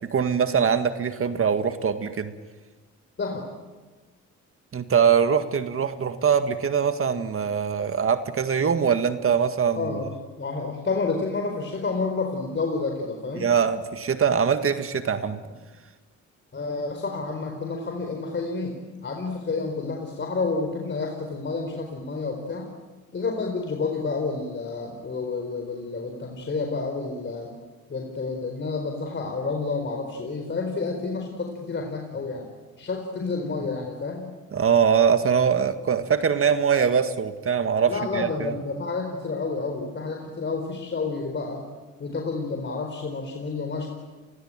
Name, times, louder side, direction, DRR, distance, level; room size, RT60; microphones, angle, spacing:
voice 1, 0.1-2.3 4.7-9.8 13.4-15.4 34.5-38.5, right 7 dB, 45° right, 9 dB, 1.9 m, -22 dB
voice 2, 9.7-10.1 10.4-13.5 16.5-22.7 23.1-27.5 27.9-32.4 32.8-34.3 37.9-41.6 42.0-43.9, left 4 dB, 40° left, 3 dB, 4.4 m, -29 dB
30.0 x 21.5 x 9.1 m, 1.3 s
cardioid pair, 90°, 30 cm